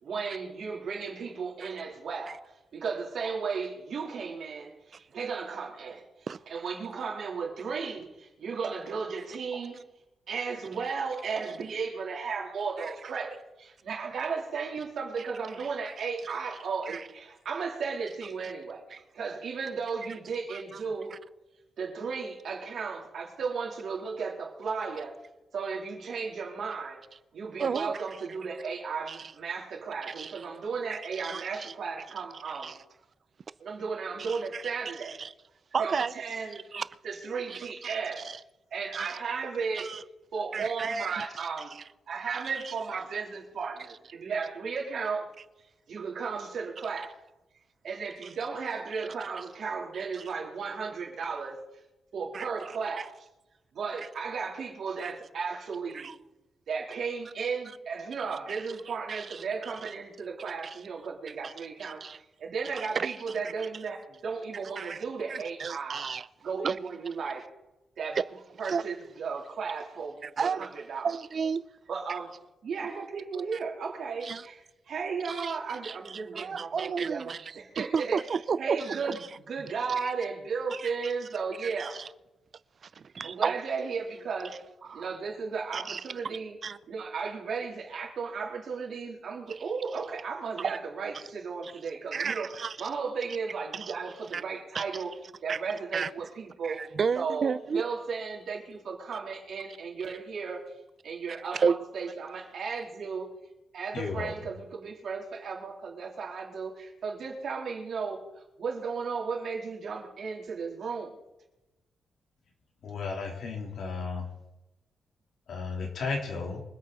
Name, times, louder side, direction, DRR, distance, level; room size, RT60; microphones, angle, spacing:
voice 1, 0.0-6.0 6.5-9.8 10.3-21.2 21.8-25.2 25.5-27.0 27.3-32.8 33.6-35.1 35.8-36.6 37.0-38.2 38.7-39.9 40.3-41.8 42.1-45.3 45.9-47.1 47.8-51.6 52.1-53.1 53.7-56.1 56.7-66.1 66.4-67.4 68.0-68.2 68.6-71.1 71.9-72.4 72.6-78.2 78.6-82.0 83.2-84.6 84.9-86.6 86.9-95.1 95.4-96.8 97.2-100.7 101.0-103.3 103.7-108.2 108.6-111.1, right 5 dB, 65° right, 3.6 m, -35 dB
voice 2, 27.6-28.0 29.1-29.2 30.1-30.3 30.9-31.7 32.6-32.7 34.3-34.6 35.2-35.3 35.7-36.1 36.7-36.8 37.5-37.7 38.2-38.4 38.9-39.1 39.8-40.0 40.5-41.2 42.6-42.7 52.3-52.5 55.0-55.1 55.9-56.1 59.1-59.4 61.4-61.5 61.8-62.2 63.0-63.1 64.8-65.0 65.3-66.3 66.5-66.8 68.7-68.8 70.2-70.6 71.0-71.6 74.2-74.4 75.3-75.5 75.8-76.0 76.3-79.2 80.0-80.1 80.7-80.9 81.8-82.1 83.0-83.5 84.9-85.1 85.7-86.0 86.6-86.8 91.6-91.7 92.1-92.8 93.7-93.9 94.3-94.4 94.7-94.8 95.5-95.6 95.9-96.1 96.6-97.8 101.5-101.7, right 6 dB, 45° right, 0.5 m, -32 dB
voice 3, 103.9-104.3 112.8-114.3 115.5-116.6, left 4 dB, 65° left, 3.6 m, -34 dB
24.5 x 8.4 x 4.1 m
wide cardioid pair, 145°, 0 cm